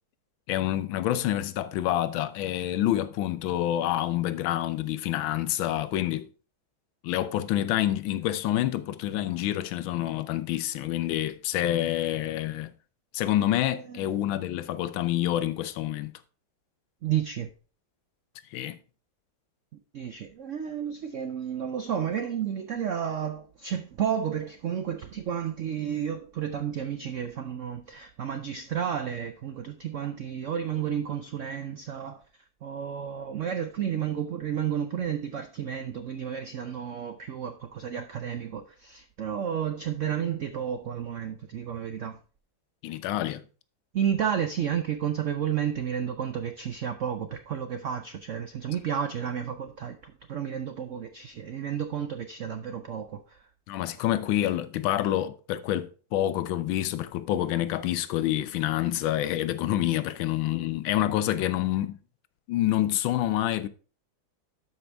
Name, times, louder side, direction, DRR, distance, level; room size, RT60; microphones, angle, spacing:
voice 1, 0.5-6.3 7.0-12.7 13.1-16.1 18.5-18.8 42.8-43.4 53.7-62.0 62.5-63.7, left 13 dB, 80° left, 1.4 m, -27 dB
voice 2, 17.0-17.5 19.9-32.2 32.6-42.2 43.9-53.4, right 9 dB, 85° right, 0.6 m, -31 dB
12.5 x 5.2 x 3.3 m
omnidirectional pair, 2.2 m